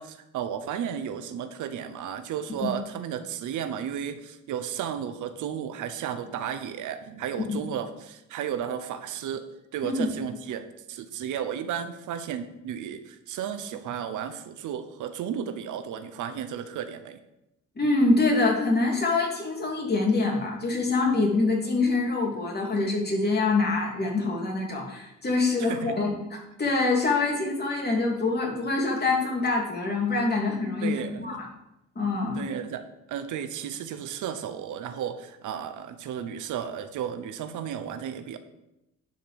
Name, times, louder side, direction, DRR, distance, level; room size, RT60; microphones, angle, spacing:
voice 1, 0.0-9.5 9.7-17.2 25.6-26.0 30.8-31.3 32.3-32.8 33.1-38.4, right 9 dB, 80° right, 9 dB, 0.9 m, -33 dB
voice 2, 17.8-31.0 31.2-31.5 31.9-32.5, left 3 dB, 35° left, -1 dB, 3.0 m, -25 dB
10.5 x 5.1 x 6.0 m, 0.89 s
cardioid pair, 90°, 30 cm